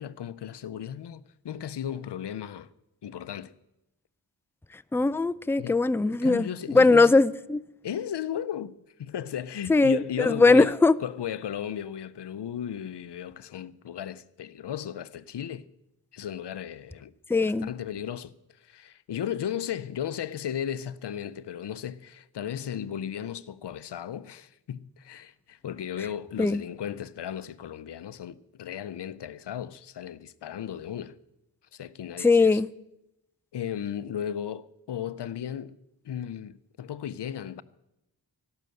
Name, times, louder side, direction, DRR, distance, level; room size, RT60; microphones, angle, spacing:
voice 1, 0.0-2.7 3.0-3.5 5.6-5.8 6.1-7.1 7.8-10.7 11.0-15.7 16.1-17.1 17.4-31.2 31.7-32.6 33.5-35.8 36.0-37.6, left 9 dB, 90° left, 0.6 m, -35 dB
voice 2, 4.9-6.5 6.7-7.6 9.7-11.0 17.3-17.7 26.4-26.6 32.2-32.7, left 3 dB, 5° left, 0.4 m, -20 dB
12.0 x 12.0 x 7.7 m
cardioid pair, 40°, 40 cm